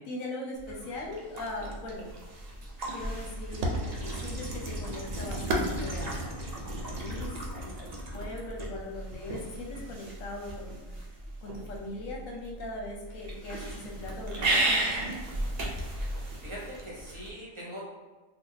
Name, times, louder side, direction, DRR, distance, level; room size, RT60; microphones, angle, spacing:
voice 1, 0.1-2.1 2.9-10.8 11.4-14.9, left 2 dB, 75° left, -1 dB, 1.2 m, -40 dB
sound 1, 0.6-17.3, right 1 dB, 50° right, 0.5 m, -35 dB
sound 2, 1.4-7.7, right 1 dB, 70° right, 0.9 m, -37 dB
voice 2, 16.4-17.8, equal, 25° right, -6 dB, 0.8 m, -41 dB
2.8 x 2.3 x 3.9 m, 1.3 s
omnidirectional pair, 1.4 m